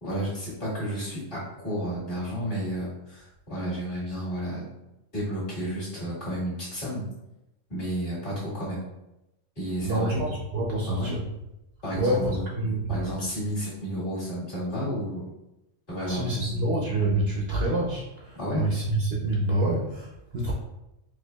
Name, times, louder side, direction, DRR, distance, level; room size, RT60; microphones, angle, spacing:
voice 1, 0.0-4.7 5.1-7.0 7.7-8.8 9.6-10.2 10.9-11.2 11.8-12.4 12.9-15.3 15.9-16.5 18.4-18.7, equal, 45° left, -9 dB, 1.7 m, -31 dB
voice 2, 9.8-11.2 11.9-13.0 16.1-20.5, right 1 dB, 60° right, -3 dB, 0.8 m, -27 dB
4.5 x 2.4 x 2.3 m, 0.89 s
omnidirectional pair, 1.3 m